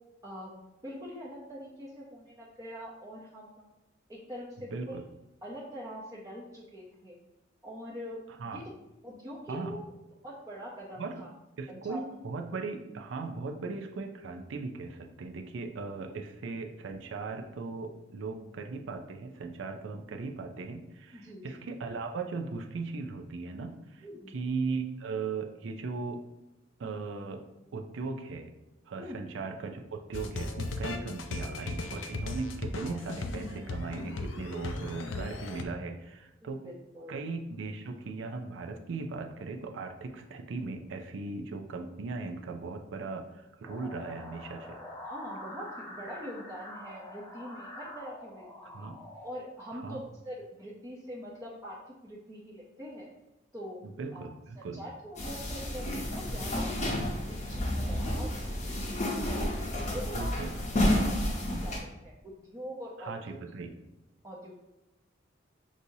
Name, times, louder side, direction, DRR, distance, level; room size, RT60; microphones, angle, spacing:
voice 1, 0.8-3.6 4.1-5.0 5.4-7.2 7.6-8.2 8.5-8.6 9.0-9.8 10.2-11.3 11.7-12.0 21.1-21.6 24.0-24.4 29.0-29.2 36.4-37.2 45.0-48.9 49.2-53.1 53.5-53.8 54.1-54.3 54.6-56.9 57.3-58.6 59.3-60.3 60.7-63.4 64.2-64.6, equal, 20° right, -6 dB, 0.6 m, -43 dB
voice 2, 4.7-5.0 8.4-8.6 9.5-9.8 11.0-11.2 11.6-26.2 26.8-27.4 27.7-28.5 28.9-36.6 37.1-44.8 48.6-49.0 49.7-50.0 53.8-54.8 60.1-60.5 63.0-63.7, right 4 dB, 75° right, 5 dB, 0.4 m, -38 dB
sound 1, 30.1-35.6, left 2 dB, 80° left, 0.5 m, -37 dB
sound 2, 43.7-49.3, left 1 dB, 10° left, 1.0 m, -45 dB
sound 3, 55.2-61.8, left 1 dB, 40° left, 0.8 m, -31 dB
6.1 x 2.7 x 2.7 m, 0.99 s
head